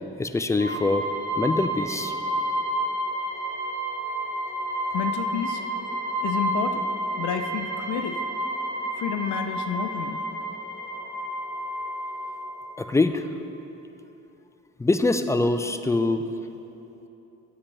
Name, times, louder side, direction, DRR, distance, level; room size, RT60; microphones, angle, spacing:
voice 1, 0.2-1.1 1.4-2.1 12.8-13.3 14.8-16.2, left 2 dB, 10° left, 9 dB, 0.3 m, -23 dB
sound 1, 0.6-13.0, right 1 dB, 25° right, 1.5 m, -30 dB
voice 2, 4.9-5.6 6.2-6.9 7.2-8.2 9.0-10.2, left 7 dB, 75° left, 7 dB, 0.6 m, -30 dB
10.0 x 8.3 x 3.3 m, 3.0 s
cardioid pair, 90°, 30 cm